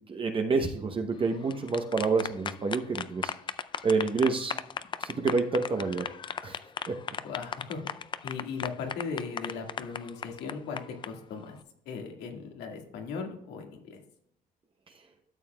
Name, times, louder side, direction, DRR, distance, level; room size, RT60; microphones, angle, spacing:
voice 1, 0.1-3.3 3.8-4.5 5.0-6.1 6.4-6.6 6.9-7.0, right 4 dB, 30° right, 4 dB, 0.8 m, -28 dB
sound 1, 1.3-11.1, left 7 dB, 30° left, 0.4 m, -36 dB
voice 2, 7.2-7.8 8.2-11.6 11.9-14.0, left 5 dB, 85° left, 3 dB, 1.9 m, -38 dB
12.5 x 7.0 x 2.3 m, 0.72 s
cardioid pair, 110°, 17 cm